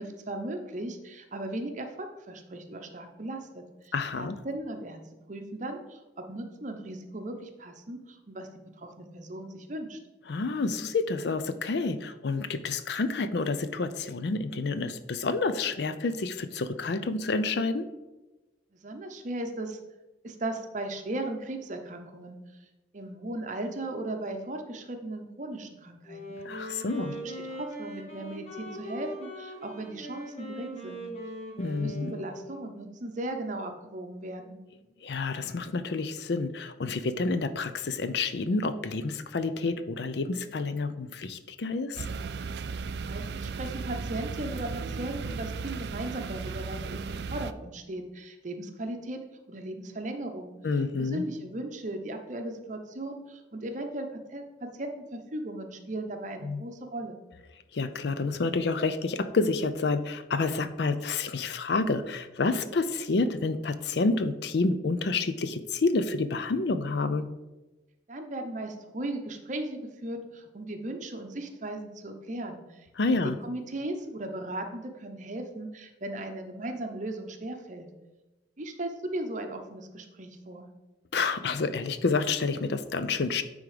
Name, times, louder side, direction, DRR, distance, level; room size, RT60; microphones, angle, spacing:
voice 1, 0.0-5.0 5.3-8.5 8.8-10.0 18.8-19.8 20.2-22.4 22.9-26.4 27.0-31.0 31.7-34.6 42.9-49.2 49.5-50.5 51.0-57.2 68.1-77.9 78.6-80.7, right 1 dB, 40° right, 5 dB, 0.8 m, -37 dB
voice 2, 3.9-4.4 10.3-17.9 26.4-27.1 31.6-32.1 35.0-42.0 50.6-51.2 56.4-56.6 57.7-67.3 73.0-73.4 81.1-83.4, left 3 dB, 65° left, 11 dB, 0.5 m, -29 dB
Wind instrument woodwind instrument, 26.0-32.8, equal, 35° left, 1.3 m, -41 dB
sound 1, 42.0-47.5, right 5 dB, 60° right, 0.4 m, -35 dB
9.6 x 3.6 x 5.0 m, 1.1 s
head